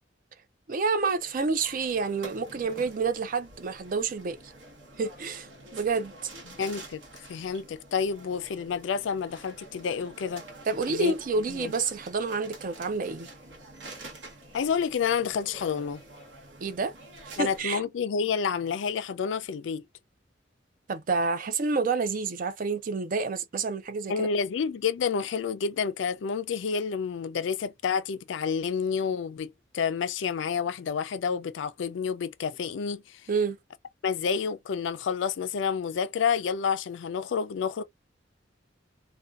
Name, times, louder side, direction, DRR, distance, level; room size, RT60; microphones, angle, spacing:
voice 1, 0.7-4.5 5.0-6.3 10.7-13.3 16.6-16.9 17.2-17.8 20.9-24.3 33.3-33.6, right 4 dB, 50° right, 0.4 m, -29 dB
sound 1, 1.0-17.6, right 2 dB, 80° right, 1.0 m, -48 dB
voice 2, 6.5-10.4 10.9-11.1 11.5-11.7 14.5-16.0 17.4-19.9 24.1-33.3 34.0-37.8, left 6 dB, 80° left, 0.4 m, -29 dB
2.6 x 2.3 x 2.3 m
head